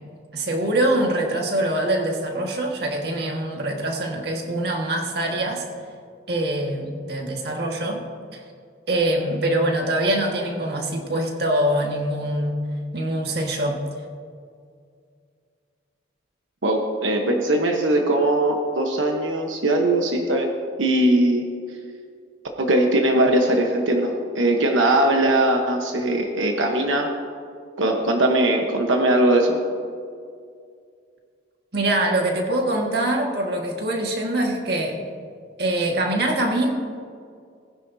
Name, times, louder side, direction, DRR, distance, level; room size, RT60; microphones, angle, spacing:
voice 1, 0.3-5.6 6.3-8.0 8.9-12.6 12.9-13.8 31.7-35.0 35.6-36.7, right 1 dB, 55° right, 1 dB, 1.7 m, -24 dB
voice 2, 16.6-20.5 20.8-21.4 22.6-27.1 27.8-29.6, right 1 dB, 90° right, 2 dB, 1.1 m, -20 dB
19.0 x 10.5 x 2.8 m, 2.2 s
head